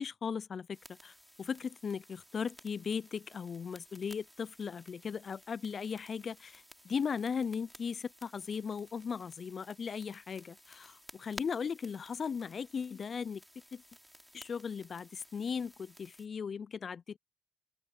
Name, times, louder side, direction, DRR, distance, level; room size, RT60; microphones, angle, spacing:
voice 1, 0.0-13.4 13.7-13.8 14.3-17.2, left 6 dB, 45° left, 0.4 m, -37 dB
sound 1, 0.7-16.3, equal, ahead, 2.9 m, -56 dB
open air
cardioid pair, 90°, 0 cm